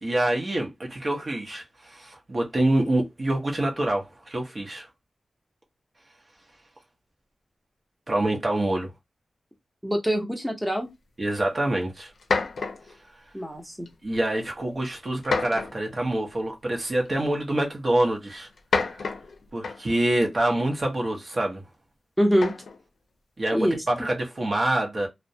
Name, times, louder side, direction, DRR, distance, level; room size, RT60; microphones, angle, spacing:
voice 1, 0.0-4.9 8.1-8.9 11.2-12.1 14.0-18.5 18.8-19.1 19.5-21.6 23.4-25.1, right 1 dB, 40° right, 0.7 m, -26 dB
voice 2, 9.8-10.9 13.3-13.9 22.2-22.5 23.5-23.8, equal, 5° right, 0.7 m, -24 dB
sound 1, 11.6-11.7 12.2-13.0 13.9-14.2 15.2-15.9 17.1-17.2 18.5-20.0 22.3-22.8, left 4 dB, 80° left, 0.5 m, -29 dB
2.3 x 2.1 x 2.6 m
wide cardioid pair, 85°, 0 cm